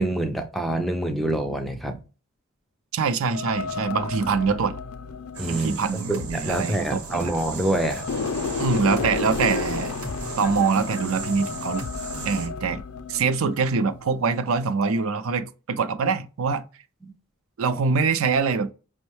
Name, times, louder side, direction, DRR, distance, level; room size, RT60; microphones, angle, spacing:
voice 1, 0.0-2.0 5.4-8.1, right 1 dB, ahead, 0.3 m, -26 dB
voice 2, 2.9-4.8 5.5-7.3 8.6-9.9 10.4-11.9 12.2-12.8 13.1-16.6 17.6-18.7, right 5 dB, 70° right, 0.4 m, -24 dB
sound 1, 3.3-7.3 7.7-14.4 14.8-15.0, left 4 dB, 85° left, 0.5 m, -32 dB
sound 2, 5.3-12.5, right 3 dB, 85° right, 1.0 m, -37 dB
5.3 x 2.1 x 2.9 m
head